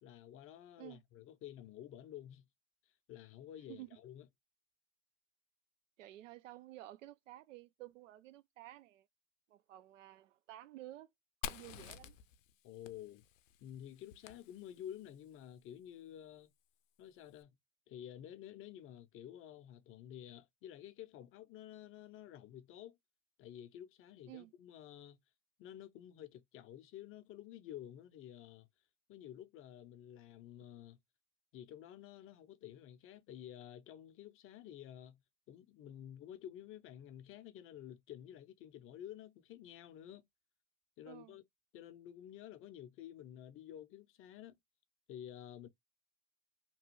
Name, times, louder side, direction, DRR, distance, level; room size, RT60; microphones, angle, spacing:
voice 1, 0.0-2.4 3.1-4.3 12.6-13.2 13.6-16.5 17.0-17.5 17.9-23.0 23.4-25.2 25.6-28.7 29.1-31.0 31.5-35.2 35.5-40.2 41.0-41.4 41.7-44.6 45.1-45.7, left 11 dB, 35° left, 0.5 m, -51 dB
voice 2, 6.0-9.1 9.5-11.1 11.4-12.2 24.3-24.5 41.1-41.4, right 15 dB, 85° right, 0.5 m, -52 dB
Fire, 11.4-15.1, left 8 dB, 90° left, 0.5 m, -49 dB
2.9 x 2.2 x 2.9 m
hypercardioid pair, 100°, 37 cm